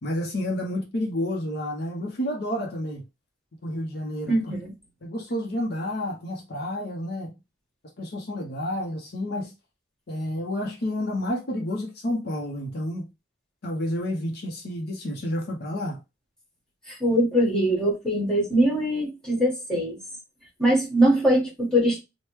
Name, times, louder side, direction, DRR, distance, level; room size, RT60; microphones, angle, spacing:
voice 1, 0.0-3.0 3.6-4.4 5.0-7.3 8.0-9.5 10.1-13.1 13.6-16.0, left 1 dB, 60° left, 0.7 m, -30 dB
voice 2, 4.3-4.7 16.9-20.0 20.6-22.0, right 1 dB, 5° left, 1.5 m, -22 dB
3.3 x 2.1 x 3.0 m
head